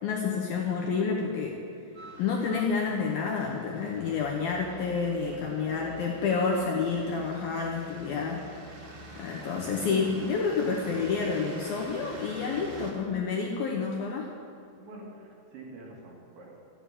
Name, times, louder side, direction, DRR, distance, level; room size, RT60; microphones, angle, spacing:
voice 1, 0.0-1.6 2.2-8.4 9.2-14.3, left 5 dB, 70° left, -1 dB, 2.4 m, -29 dB
sound 1, 2.0-12.9, right 2 dB, 45° right, 2.2 m, -46 dB
voice 2, 3.8-4.4 5.3-5.9 14.8-16.6, right 2 dB, 70° right, -3 dB, 4.6 m, -47 dB
13.0 x 8.8 x 8.9 m, 2.7 s
omnidirectional pair, 5.4 m